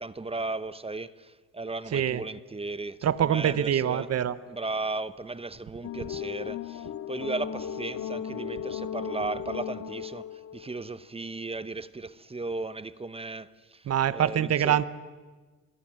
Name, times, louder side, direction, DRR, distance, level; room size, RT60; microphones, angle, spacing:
voice 1, 0.0-4.1 4.5-14.8, right 3 dB, 20° right, 0.9 m, -36 dB
voice 2, 1.9-2.2 3.0-4.4 13.9-14.9, right 10 dB, 55° right, 1.0 m, -25 dB
sound 1, 5.8-10.9, left 8 dB, 70° left, 2.0 m, -36 dB
27.0 x 22.5 x 7.7 m
cardioid pair, 90°, 30 cm